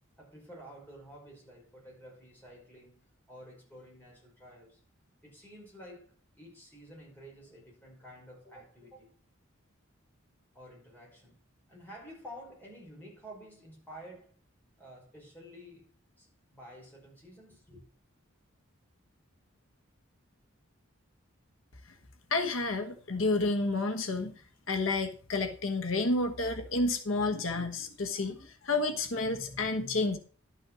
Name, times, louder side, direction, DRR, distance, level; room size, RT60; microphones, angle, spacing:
voice 1, 0.2-4.8 5.2-9.1 10.5-11.4 11.7-14.3 14.8-15.9 16.2-17.8, equal, 10° left, 5.5 m, -51 dB
voice 2, 22.3-24.3 24.7-30.2, left 2 dB, 75° left, 1.3 m, -30 dB
12.0 x 6.2 x 6.2 m
head